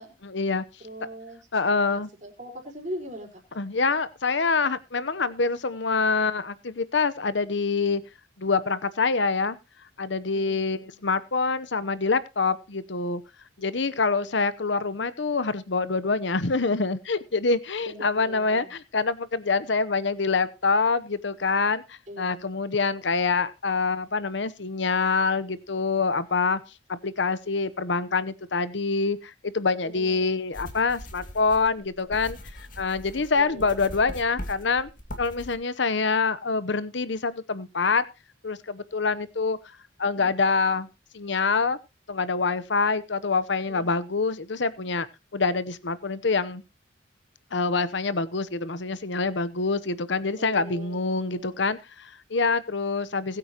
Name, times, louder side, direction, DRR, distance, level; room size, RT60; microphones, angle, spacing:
voice 1, 0.2-0.6 1.5-2.1 3.6-8.0 8.4-9.6 10.0-13.2 13.6-26.6 26.9-32.4 32.8-34.9 35.2-38.0 38.4-39.6 40.0-40.9 41.1-41.8 42.1-45.1 45.3-46.6 47.5-53.4, left 4 dB, 65° left, 16 dB, 0.9 m, -26 dB
voice 2, 0.8-3.4 10.3-11.0 13.6-14.4 17.8-18.7 22.1-22.4 29.8-30.4 33.4-33.8 40.0-40.3 43.7-43.9 50.4-51.6, equal, 40° right, 0 dB, 4.7 m, -41 dB
sound 1, 30.5-35.6, left 1 dB, 45° left, 2.4 m, -41 dB
21.0 x 8.7 x 3.0 m, 0.27 s
head